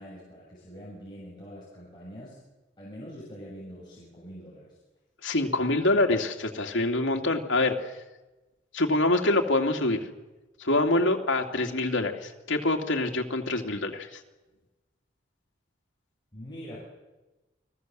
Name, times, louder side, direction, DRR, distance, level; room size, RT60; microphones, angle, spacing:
voice 1, 0.0-2.4 2.8-4.8 16.3-16.8, equal, 25° left, -6 dB, 7.1 m, -44 dB
voice 2, 5.2-7.9 8.7-10.0 10.6-14.2, left 2 dB, 90° left, 2 dB, 2.9 m, -25 dB
29.5 x 20.5 x 7.8 m, 1.1 s
head